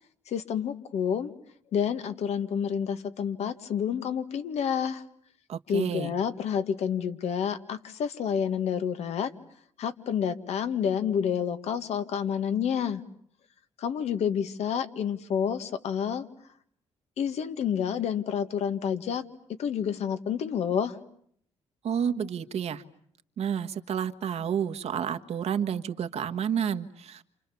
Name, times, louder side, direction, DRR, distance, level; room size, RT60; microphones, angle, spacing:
voice 1, 0.3-1.3 1.7-5.0 5.7-9.3 9.8-13.0 13.8-16.3 17.2-19.2 19.6-21.0, left 8 dB, 75° left, 9 dB, 1.9 m, -29 dB
voice 2, 5.5-6.1 21.8-22.8 23.4-27.2, right 8 dB, 70° right, 9 dB, 1.6 m, -30 dB
29.0 x 28.5 x 7.1 m, 0.66 s
cardioid pair, 80°, 11 cm